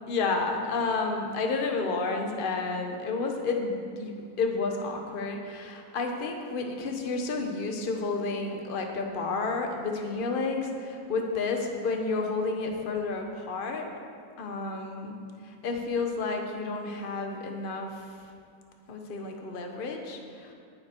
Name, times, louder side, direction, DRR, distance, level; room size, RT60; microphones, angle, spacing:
voice 1, 0.1-4.1 4.4-13.8 14.4-15.2 15.4-18.1 18.9-20.5, left 3 dB, 35° left, 3 dB, 1.1 m, -31 dB
19.0 x 7.6 x 4.6 m, 2.3 s
omnidirectional pair, 2.1 m